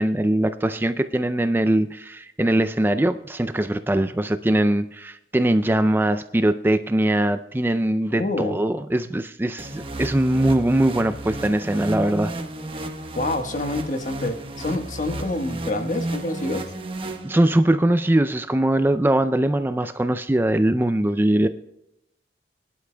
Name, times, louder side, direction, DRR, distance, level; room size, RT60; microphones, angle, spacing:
voice 1, 0.0-12.3 17.2-21.5, right 1 dB, 10° right, 10 dB, 0.4 m, -21 dB
voice 2, 8.1-8.6 13.1-16.7, left 2 dB, 45° left, 6 dB, 1.4 m, -27 dB
sound 1, 9.6-17.8, right 1 dB, 30° right, 1.2 m, -33 dB
22.5 x 11.5 x 2.2 m, 0.85 s
head